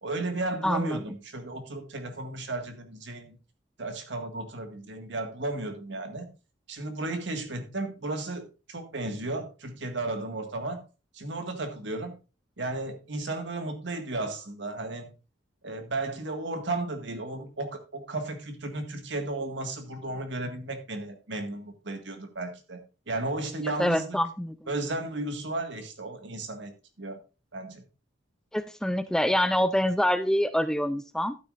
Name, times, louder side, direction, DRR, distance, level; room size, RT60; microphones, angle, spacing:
voice 1, 0.0-3.4 3.8-6.3 6.7-8.4 8.7-10.8 11.1-12.2 12.6-15.1 15.6-22.8 23.1-24.2 24.7-27.2 27.5-27.8, right 2 dB, 70° right, 1.8 m, -34 dB
voice 2, 0.6-1.0 23.8-24.7 28.5-31.4, left 1 dB, 5° left, 0.4 m, -26 dB
12.0 x 9.5 x 2.5 m
head